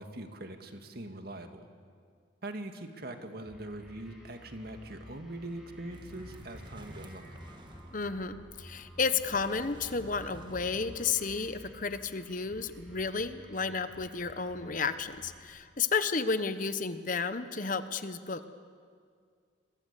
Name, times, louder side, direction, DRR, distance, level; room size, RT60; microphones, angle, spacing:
voice 1, 0.0-1.7 2.4-7.4, right 1 dB, 50° right, 6 dB, 2.1 m, -42 dB
sound 1, 3.4-15.4, equal, ahead, 6.0 m, -52 dB
sound 2, 5.9-11.6, equal, 25° right, 1.8 m, -52 dB
voice 2, 7.9-18.5, left 5 dB, 40° left, 11 dB, 1.0 m, -32 dB
28.5 x 23.0 x 8.4 m, 2.1 s
head